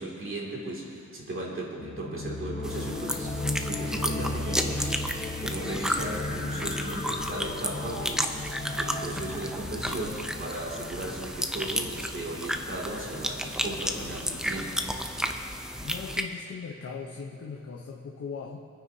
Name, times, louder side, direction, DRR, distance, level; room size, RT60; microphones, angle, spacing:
voice 1, 0.0-4.9 5.4-8.3 8.7-14.8, right 1 dB, 40° right, -4 dB, 2.5 m, -36 dB
sound 1, 1.8-12.0, left 2 dB, 25° left, 1.1 m, -35 dB
sound 2, 2.6-16.2, equal, ahead, 0.6 m, -33 dB
voice 2, 15.8-18.6, left 5 dB, 50° left, -1 dB, 0.9 m, -39 dB
24.5 x 9.6 x 2.8 m, 2.4 s
wide cardioid pair, 140°, 31 cm